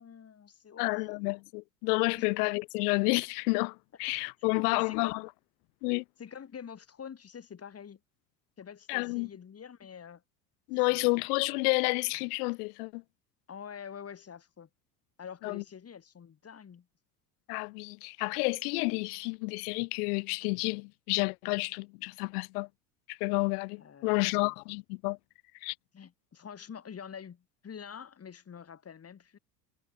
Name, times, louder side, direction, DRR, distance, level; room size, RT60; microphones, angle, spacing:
voice 1, 0.0-1.3 2.2-2.3 4.4-5.2 6.2-8.0 8.6-10.2 10.9-11.1 13.5-14.7 15.2-16.9 23.8-24.5 25.9-29.4, left 7 dB, 30° left, 3.5 m, -46 dB
voice 2, 0.8-5.2 5.8-6.0 8.9-9.3 10.7-13.0 15.4-15.6 17.5-22.7 23.1-25.2 25.6-25.7, left 30 dB, 65° left, 0.6 m, -30 dB
hypercardioid pair, 85°, 49 cm